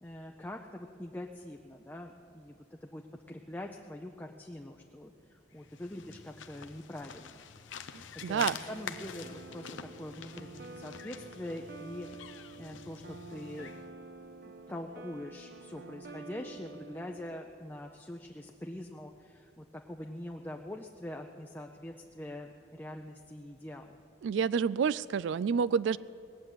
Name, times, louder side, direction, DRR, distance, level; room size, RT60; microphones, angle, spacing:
voice 1, 0.0-3.0 3.3-5.1 5.5-7.4 8.1-13.7 14.7-24.0, left 1 dB, 10° left, 2 dB, 0.5 m, -44 dB
sound 1, 5.6-13.9, left 7 dB, 85° left, 0.7 m, -46 dB
voice 2, 7.9-8.6 24.2-26.0, right 6 dB, 75° right, 19 dB, 0.3 m, -29 dB
sound 2, 8.7-17.4, right 2 dB, 50° right, 0.8 m, -48 dB
19.0 x 7.7 x 9.8 m, 2.5 s
head